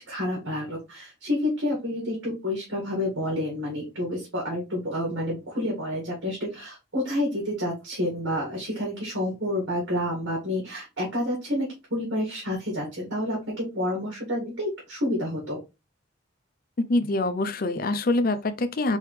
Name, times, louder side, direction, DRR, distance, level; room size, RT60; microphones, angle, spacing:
voice 1, 0.0-15.6, left 1 dB, 75° right, 1.9 m, -29 dB
voice 2, 16.8-19.0, left 2 dB, 45° left, 0.5 m, -25 dB
4.4 x 3.4 x 3.2 m
head